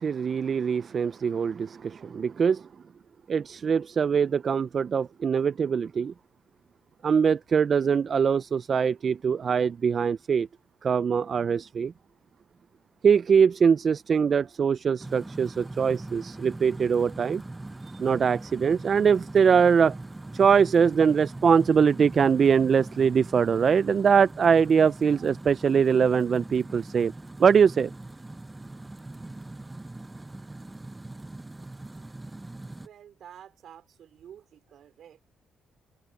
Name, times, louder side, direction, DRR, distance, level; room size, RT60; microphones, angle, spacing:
voice 1, 0.0-2.7 3.3-6.1 7.0-10.5 10.8-11.9 13.0-17.4 17.8-20.0 20.3-27.1 27.4-27.9, right 6 dB, 45° right, 0.4 m, -22 dB
sound 1, 15.0-32.9, right 2 dB, 15° right, 0.7 m, -41 dB
voice 2, 32.8-35.2, right 9 dB, 70° right, 3.5 m, -50 dB
open air
cardioid pair, 90°, 0 cm